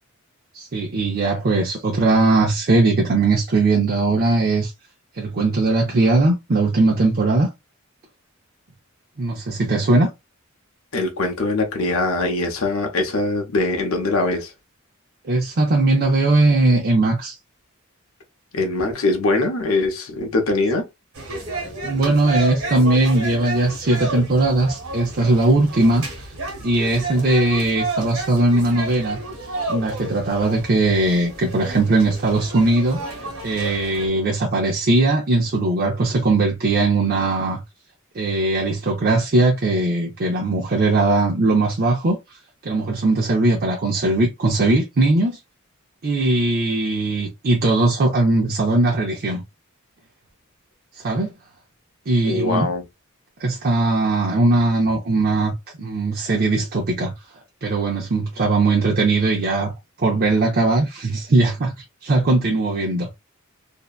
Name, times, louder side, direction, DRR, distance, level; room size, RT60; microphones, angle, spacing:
voice 1, 0.5-4.7 5.1-7.5 9.2-10.1 15.2-17.4 21.8-26.3 26.6-29.2 29.7-33.0 33.4-37.6 38.1-45.4 46.0-49.4 50.9-51.3 52.1-52.7 53.4-55.5 55.8-57.1 57.6-59.7 60.0-63.1, right 2 dB, 45° right, 0.5 m, -19 dB
voice 2, 10.9-14.5 18.5-20.8 52.2-52.8, left 2 dB, 75° left, 0.7 m, -22 dB
sound 1, 21.1-34.1, right 2 dB, 80° right, 1.1 m, -31 dB
2.6 x 2.2 x 2.3 m
head